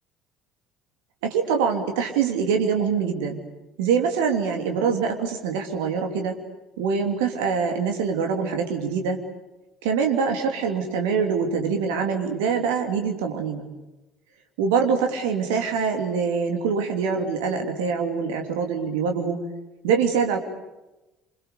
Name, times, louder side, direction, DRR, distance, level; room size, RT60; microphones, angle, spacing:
voice 1, 1.2-3.4 3.8-6.4 6.8-9.2 9.8-13.7 14.6-19.4 19.8-20.4, right 6 dB, 65° right, 4 dB, 3.1 m, -24 dB
27.5 x 27.0 x 6.9 m, 1.0 s
figure-of-eight pair, 55°, 0 cm